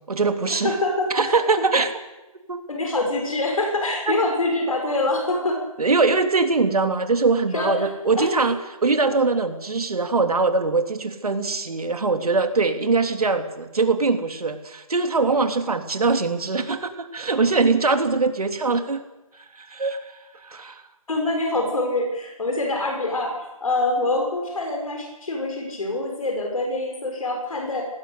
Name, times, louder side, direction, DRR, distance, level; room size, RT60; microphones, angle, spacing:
voice 1, 0.1-0.7 1.1-1.9 2.5-2.6 5.8-19.0 19.6-20.0 20.4-20.8, right 4 dB, 85° right, 6 dB, 3.3 m, -22 dB
voice 2, 0.6-1.3 2.7-5.6 7.5-7.9 8.2-8.3 21.1-27.9, left 2 dB, 70° left, 1 dB, 6.5 m, -25 dB
19.5 x 16.5 x 8.4 m, 1.1 s
hypercardioid pair, 180°, 19 cm